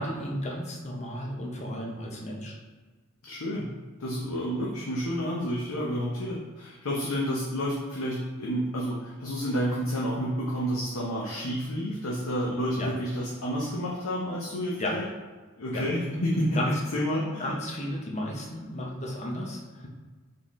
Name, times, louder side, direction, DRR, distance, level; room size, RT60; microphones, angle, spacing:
voice 1, 0.0-2.5 12.8-12.9 14.8-14.9 15.7-15.8 16.5-16.7 17.4-19.9, left 1 dB, 30° left, -2 dB, 0.7 m, -33 dB
voice 2, 3.2-3.7 4.0-15.0 15.6-16.6 16.9-17.5, equal, 70° left, -5 dB, 0.7 m, -30 dB
4.0 x 3.7 x 3.1 m, 1.4 s
head